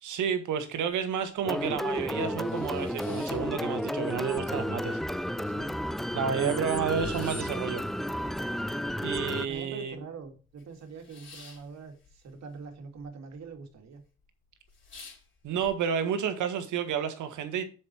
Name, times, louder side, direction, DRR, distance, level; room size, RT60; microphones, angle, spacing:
voice 1, 0.0-5.0 6.1-7.8 9.0-10.0 15.4-17.6, right 7 dB, 80° right, 1.9 m, -30 dB
sound 1, 0.9-1.0 1.4-1.5 2.0-4.2 4.5-5.2 5.6-5.7 5.8-10.0 10.3-13.1 13.3-13.9 14.2-14.3 14.6-15.7, left 4 dB, 40° left, 4.4 m, -51 dB
sound 2, 1.4-9.5, equal, ahead, 0.4 m, -32 dB
voice 2, 5.4-5.8 6.4-6.6 9.5-14.0, right 5 dB, 60° right, 2.7 m, -43 dB
7.5 x 6.6 x 4.5 m
cardioid pair, 90°, 30 cm